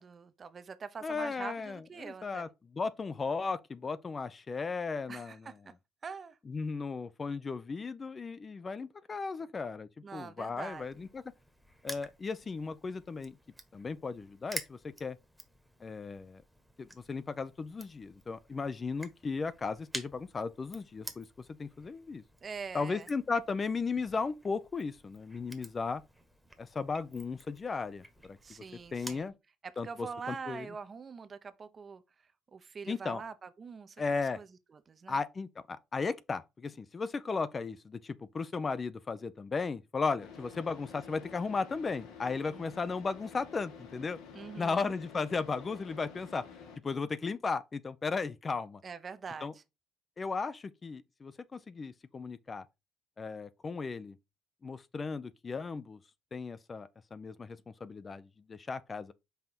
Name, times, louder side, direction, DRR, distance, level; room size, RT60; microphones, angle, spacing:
voice 1, 0.0-2.5 5.1-5.6 6.0-6.4 10.0-11.0 22.4-23.1 28.4-29.3 29.6-32.0 32.5-34.5 34.9-35.2 42.5-42.8 44.3-44.9 48.8-49.6, right 5 dB, 35° right, 0.7 m, -44 dB
voice 2, 1.0-2.5 2.7-5.5 6.5-11.2 11.8-13.4 13.7-15.2 15.8-16.4 16.8-21.3 21.6-22.2 22.7-26.0 26.6-28.4 28.9-29.3 29.8-30.7 32.9-33.2 34.0-34.4 35.1-44.2 44.6-46.4 46.8-48.8 49.4-49.5 50.2-52.6 53.2-54.2 54.6-56.0 56.3-59.1, left 4 dB, 30° left, 0.5 m, -36 dB
Crushing, 10.7-29.3, equal, ahead, 1.2 m, -50 dB
Car / Idling, 40.2-46.8, left 6 dB, 85° left, 1.6 m, -50 dB
5.7 x 3.8 x 4.4 m
cardioid pair, 105°, 0 cm